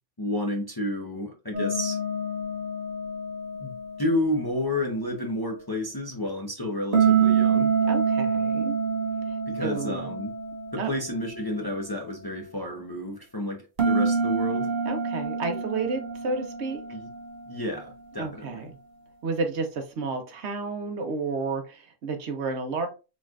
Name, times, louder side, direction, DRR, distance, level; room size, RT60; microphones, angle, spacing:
voice 1, 0.2-2.0 3.6-3.7 4.0-7.7 9.5-10.3 10.7-14.7 16.9-17.1 17.5-18.6, left 1 dB, 25° left, 0.6 m, -30 dB
sound 1, 1.5-4.6 6.9-11.4 13.8-18.3, right 5 dB, 50° right, 1.5 m, -27 dB
voice 2, 7.8-8.8 9.3-10.1 10.8-10.9 14.8-16.8 18.2-18.7 19.2-22.9, right 4 dB, 65° right, 1.0 m, -31 dB
4.1 x 3.1 x 2.4 m
omnidirectional pair, 1.3 m